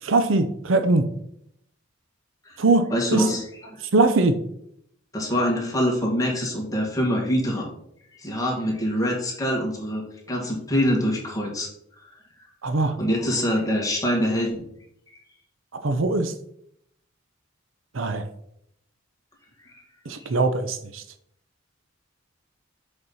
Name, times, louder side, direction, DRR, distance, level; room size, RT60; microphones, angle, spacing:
voice 1, 0.0-1.1 2.6-2.9 3.1-3.3 3.9-4.4 12.6-13.0 15.7-16.3 17.9-18.2 20.1-21.0, right 3 dB, 75° right, 10 dB, 0.7 m, -21 dB
voice 2, 2.9-3.8 5.1-7.7 8.2-11.7 13.0-14.6 15.1-15.2 19.6-19.7 20.2-20.4, equal, 20° left, -2 dB, 1.9 m, -25 dB
6.8 x 5.3 x 4.2 m, 0.73 s
head